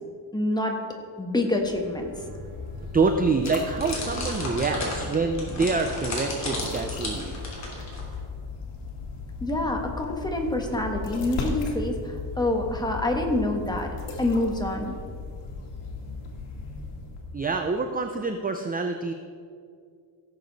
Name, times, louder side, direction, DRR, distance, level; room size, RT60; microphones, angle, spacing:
voice 1, 0.3-0.8 1.2-2.1 9.4-13.9 14.2-14.9, left 1 dB, 10° left, 2 dB, 1.3 m, -26 dB
sound 1, 1.4-7.4, equal, 80° right, 2.1 m, -43 dB
sound 2, 1.8-17.6, left 4 dB, 85° left, 2.0 m, -37 dB
voice 2, 2.9-7.3 17.3-19.1, right 4 dB, 20° right, 6 dB, 0.4 m, -26 dB
sound 3, 3.4-8.2, left 1 dB, 35° left, 2.9 m, -34 dB
17.0 x 6.9 x 4.0 m, 2.2 s
cardioid pair, 140°, 49 cm